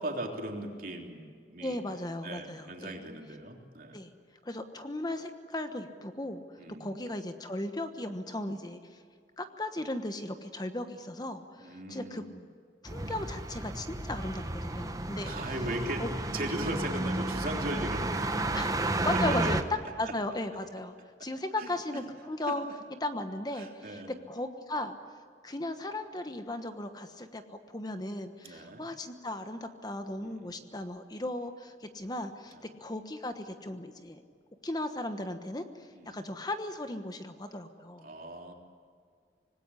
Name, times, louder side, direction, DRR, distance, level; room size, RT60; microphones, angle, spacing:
voice 1, 0.0-1.9 2.2-4.0 6.6-6.9 11.6-12.4 15.2-16.1 16.3-19.5 20.0-20.1 21.2-21.3 21.6-21.7 22.5-22.6 23.5-24.1 28.4-28.8 30.2-30.7 32.5-32.6 35.9-36.2 38.0-38.5, right 1 dB, 55° right, 2 dB, 3.5 m, -38 dB
voice 2, 1.6-2.9 3.9-4.1 4.4-9.0 9.4-12.2 12.8-15.3 16.0-16.1 18.5-18.7 19.0-19.6 20.0-20.9 21.2-22.6 23.0-24.0 24.3-24.9 25.4-32.5 32.8-34.2 34.6-38.1, left 1 dB, 25° left, 8 dB, 1.2 m, -36 dB
sound 1, 12.8-19.6, right 2 dB, 20° right, 1.2 m, -32 dB
25.5 x 20.0 x 9.9 m, 2.1 s
head